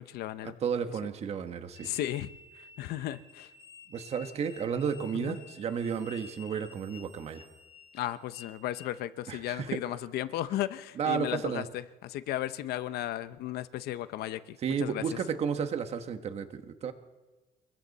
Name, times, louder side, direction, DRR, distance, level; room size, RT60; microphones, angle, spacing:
voice 1, 0.0-0.6 1.8-2.3 2.6-3.5 5.1-5.4 7.9-15.2, left 13 dB, 85° left, 13 dB, 0.9 m, -35 dB
voice 2, 0.6-1.9 3.9-7.4 9.3-9.8 11.0-11.6 14.6-16.9, right 7 dB, 40° right, 7 dB, 1.4 m, -32 dB
sound 1, 1.8-8.9, left 4 dB, 35° left, 2.3 m, -52 dB
28.5 x 22.0 x 4.2 m, 1.2 s
cardioid pair, 175°, 16 cm